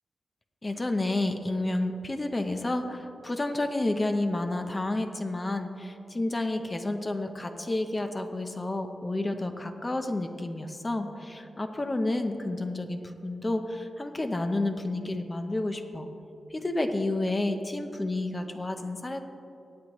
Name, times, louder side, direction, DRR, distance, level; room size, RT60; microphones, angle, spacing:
voice 1, 0.6-16.1 16.5-19.2, left 2 dB, 25° left, 6 dB, 0.6 m, -30 dB
18.0 x 7.8 x 3.0 m, 3.0 s
wide cardioid pair, 110°, 0 cm